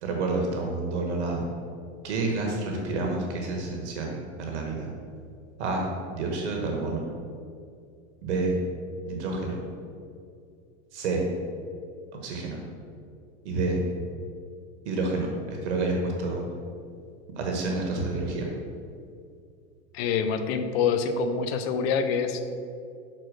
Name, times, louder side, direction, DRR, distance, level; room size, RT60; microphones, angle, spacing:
voice 1, 0.0-1.4 2.0-4.9 5.6-7.0 8.2-8.5 9.1-9.6 10.9-11.3 12.2-12.6 13.4-13.8 14.8-16.5 17.4-18.5, right 3 dB, 80° right, 1 dB, 1.4 m, -29 dB
voice 2, 19.9-22.5, left 6 dB, 60° left, 8 dB, 0.8 m, -26 dB
6.4 x 4.3 x 6.3 m, 2.3 s
hypercardioid pair, 110°, 34 cm